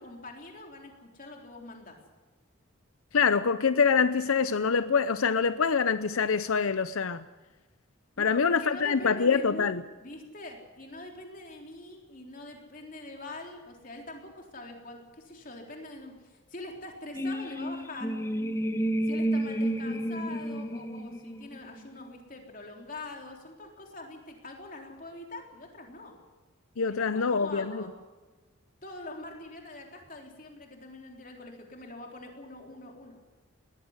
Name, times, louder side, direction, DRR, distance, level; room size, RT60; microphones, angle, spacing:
voice 1, 0.0-2.0 8.2-18.1 19.1-26.1 26.9-27.9 28.8-33.3, left 2 dB, 40° left, 2 dB, 3.7 m, -44 dB
voice 2, 3.1-7.2 8.2-9.8 26.8-27.8, left 5 dB, 85° left, 13 dB, 0.7 m, -25 dB
sound 1, 17.1-22.0, right 1 dB, 15° left, 0.8 m, -31 dB
20.0 x 15.5 x 9.7 m, 1.2 s
head